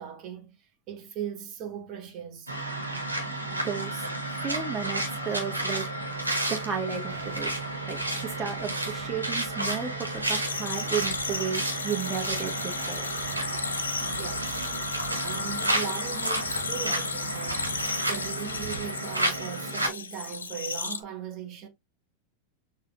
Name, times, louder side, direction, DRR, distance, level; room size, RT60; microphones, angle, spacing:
voice 1, 0.0-2.5 14.0-14.6 15.2-17.7 18.1-21.7, right 8 dB, 40° right, 1.3 m, -38 dB
sound 1, 2.5-19.9, right 1 dB, 90° right, 1.3 m, -32 dB
voice 2, 3.5-6.2 6.5-7.5 7.9-13.1, right 7 dB, 15° right, 1.1 m, -34 dB
sound 2, 7.1-19.5, right 7 dB, 65° right, 0.7 m, -44 dB
sound 3, 10.4-21.0, left 4 dB, 75° left, 0.5 m, -34 dB
6.7 x 2.8 x 2.4 m
figure-of-eight pair, 90°, 0 cm